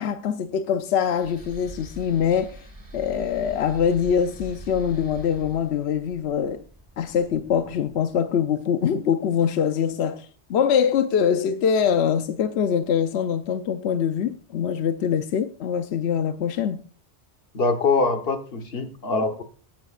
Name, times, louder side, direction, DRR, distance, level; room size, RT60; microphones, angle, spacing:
voice 1, 0.0-2.6 2.9-6.6 7.0-16.9, left 8 dB, 80° left, 0.9 m, -23 dB
sound 1, 1.1-8.3, equal, 25° right, 1.7 m, -43 dB
voice 2, 17.5-19.4, left 3 dB, 65° left, 1.4 m, -23 dB
16.0 x 10.5 x 2.4 m
omnidirectional pair, 1.1 m